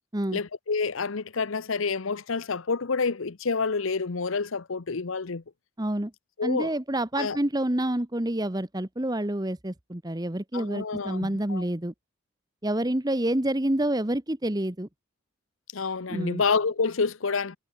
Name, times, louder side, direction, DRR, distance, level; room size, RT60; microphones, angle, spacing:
voice 1, 0.3-5.4 6.4-6.7 7.2-7.4 10.5-11.7 15.7-17.6, left 4 dB, 75° left, 0.8 m, -28 dB
voice 2, 5.8-6.1 6.4-11.9 12.6-14.9 16.1-16.4, right 1 dB, 20° right, 1.1 m, -28 dB
head